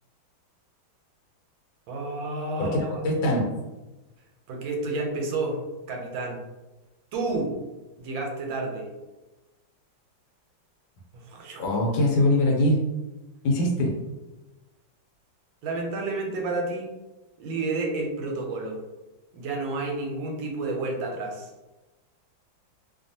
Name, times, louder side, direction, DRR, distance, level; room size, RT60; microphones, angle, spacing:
voice 1, 1.9-3.0 4.5-5.6 5.9-6.4 7.1-7.5 8.0-8.9 11.3-11.7 15.6-16.9 17.4-18.8 19.3-21.5, right 2 dB, 85° right, 1 dB, 1.4 m, -30 dB
voice 2, 2.6-3.5 11.6-12.9 13.4-14.0, left 1 dB, 75° left, 0 dB, 1.3 m, -23 dB
3.1 x 2.3 x 2.7 m, 1.1 s
omnidirectional pair, 2.1 m